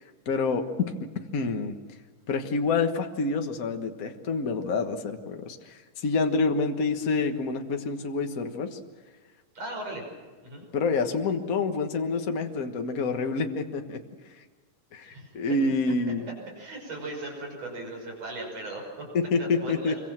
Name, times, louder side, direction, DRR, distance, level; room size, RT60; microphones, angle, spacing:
voice 1, 0.0-1.7 2.3-8.8 10.7-14.0 14.9-16.3 19.1-19.9, left 4 dB, 70° left, 5 dB, 0.8 m, -28 dB
voice 2, 9.5-10.0 10.4-10.6 15.0-15.3 16.6-19.0 19.4-20.0, right 2 dB, 45° right, 1 dB, 6.7 m, -37 dB
25.5 x 24.0 x 7.5 m, 1.4 s
omnidirectional pair, 4.0 m